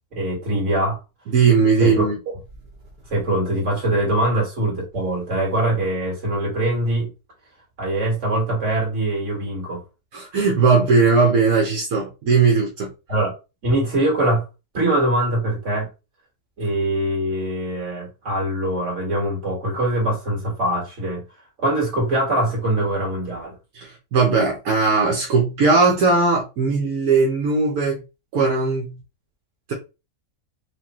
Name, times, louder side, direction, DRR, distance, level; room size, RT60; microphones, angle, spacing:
voice 1, 0.1-1.0 1.8-2.1 3.1-7.1 7.8-9.8 13.1-13.3 13.6-14.4 14.7-15.9 16.6-21.2 21.6-23.6, right 1 dB, 55° right, 2.1 m, -22 dB
voice 2, 1.3-2.1 4.3-4.4 10.1-12.9 23.7-28.0 28.3-29.0, right 4 dB, 75° right, 1.4 m, -18 dB
4.9 x 2.2 x 3.0 m
omnidirectional pair, 1.5 m